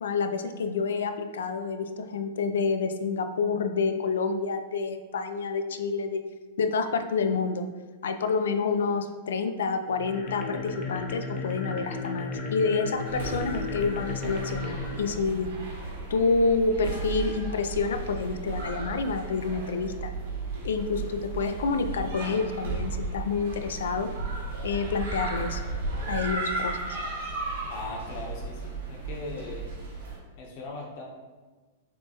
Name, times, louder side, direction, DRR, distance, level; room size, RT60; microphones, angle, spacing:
voice 1, 0.0-6.2 6.6-7.7 8.0-15.5 16.1-20.1 20.6-24.1 24.6-25.6 26.1-26.8, left 4 dB, 85° left, 8 dB, 0.3 m, -28 dB
sound 1, 9.9-16.2, left 4 dB, 40° left, 0.5 m, -35 dB
sound 2, 13.0-30.2, right 3 dB, 90° right, 1.4 m, -35 dB
voice 2, 27.7-29.7 30.4-31.0, left 2 dB, 55° left, -2 dB, 1.1 m, -39 dB
6.1 x 2.3 x 2.9 m, 1.3 s
hypercardioid pair, 130°, 0 cm